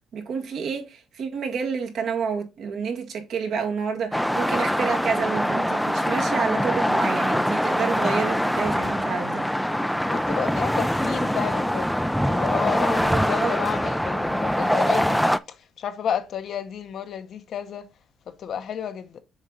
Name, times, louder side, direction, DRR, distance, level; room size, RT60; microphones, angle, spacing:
voice 1, 0.1-9.5 13.1-13.5, right 6 dB, 70° right, 1.8 m, -29 dB
sound 1, 4.1-15.4, equal, ahead, 0.4 m, -23 dB
voice 2, 10.1-15.2 15.8-17.9 18.3-19.2, left 8 dB, 65° left, 0.9 m, -31 dB
7.1 x 4.1 x 3.8 m
cardioid pair, 90°, 0 cm